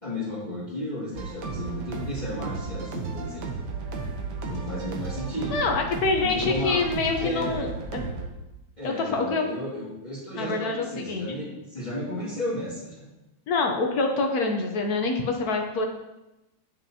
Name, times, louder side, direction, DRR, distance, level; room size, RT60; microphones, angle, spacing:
voice 1, 0.0-3.5 4.4-5.6 6.2-6.8 7.2-7.7 8.8-13.1, left 1 dB, 20° left, -11 dB, 2.1 m, -33 dB
sound 1, 1.1-8.3, right 4 dB, 65° right, 1.4 m, -34 dB
voice 2, 5.5-7.7 7.9-8.0 9.1-9.4 10.4-11.3 13.5-15.9, left 3 dB, 60° left, 3 dB, 1.1 m, -25 dB
9.6 x 5.5 x 2.8 m, 0.97 s
omnidirectional pair, 2.1 m